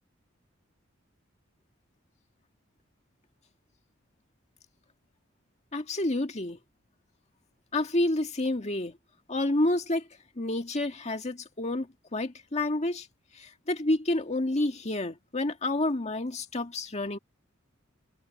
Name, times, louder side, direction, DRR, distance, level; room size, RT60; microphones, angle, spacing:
voice 1, 5.7-6.6 7.7-8.9 9.3-10.0 10.4-11.9 12.1-13.0 13.7-17.2, left 2 dB, 35° left, 1.9 m, -29 dB
head